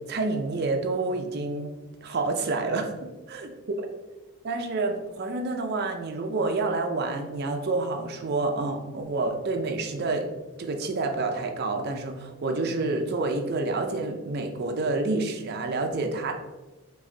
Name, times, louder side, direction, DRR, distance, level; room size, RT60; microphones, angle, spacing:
voice 1, 0.1-1.7 2.0-2.9 3.3-3.5 4.4-10.3 10.6-16.3, right 3 dB, 45° right, 4 dB, 0.4 m, -28 dB
3.1 x 2.5 x 3.7 m, 1.1 s
head